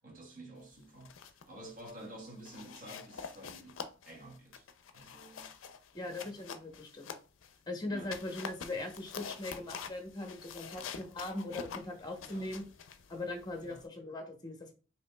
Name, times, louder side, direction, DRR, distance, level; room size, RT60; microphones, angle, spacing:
voice 1, 0.0-4.7 4.9-5.5 6.2-6.5 7.9-8.1 10.7-10.9 12.2-12.5 13.6-13.8, right 1 dB, 45° right, 1.2 m, -51 dB
sound 1, 0.8-1.5 1.8-2.1 2.5-7.6 8.0-13.9, left 6 dB, 85° left, 0.4 m, -46 dB
voice 2, 5.9-7.2 7.7-12.6 13.1-14.7, left 2 dB, 20° left, 0.7 m, -40 dB
5.0 x 2.8 x 2.2 m
head